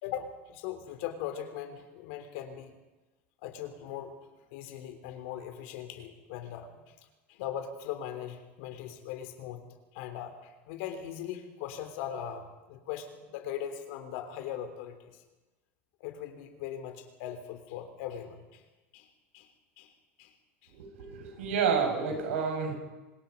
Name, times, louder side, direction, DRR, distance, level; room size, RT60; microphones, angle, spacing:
voice 1, 0.0-2.8 3.4-4.1 4.5-6.9 7.3-9.6 9.9-15.2 16.0-18.6 18.9-19.1 19.3-19.5 19.8-19.9 20.2-20.3 20.6-20.7, left 10 dB, 70° left, 7 dB, 3.5 m, -40 dB
voice 2, 20.7-22.8, right 6 dB, 90° right, 3 dB, 6.3 m, -29 dB
26.5 x 19.5 x 5.4 m, 1.2 s
supercardioid pair, 120°, 7 cm